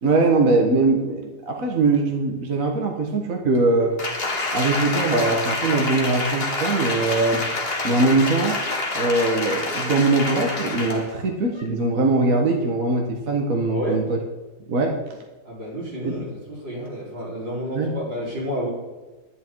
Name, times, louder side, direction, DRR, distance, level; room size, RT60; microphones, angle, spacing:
voice 1, 0.0-3.9 4.5-7.4 7.8-8.6 8.9-14.2 14.7-15.0 16.1-16.2 17.7-17.9, right 3 dB, 50° right, 2 dB, 1.6 m, -21 dB
Applause, 4.0-11.1 11.5-11.7, left 2 dB, 35° left, 1.9 m, -27 dB
voice 2, 13.7-14.1 15.4-18.7, equal, 80° right, -5 dB, 5.0 m, -30 dB
11.0 x 11.0 x 4.6 m, 1.2 s
omnidirectional pair, 1.9 m